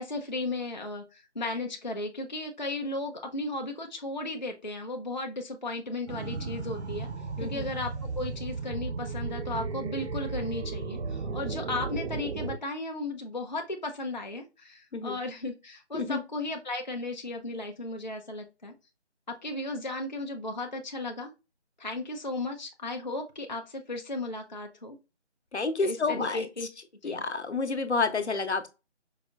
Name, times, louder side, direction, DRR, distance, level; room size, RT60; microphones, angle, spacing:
voice 1, 0.0-7.1 7.4-18.7 19.3-21.3 21.8-25.0 25.8-26.7 27.0-27.2, left 2 dB, 40° left, 0.5 m, -35 dB
sound 1, 6.1-12.6, right 4 dB, 70° right, 0.5 m, -35 dB
voice 2, 7.4-7.7 14.9-15.2 15.9-16.2 25.5-26.5 27.0-28.7, left 4 dB, 70° left, 0.7 m, -29 dB
4.8 x 2.2 x 2.3 m
figure-of-eight pair, 165°, 35 cm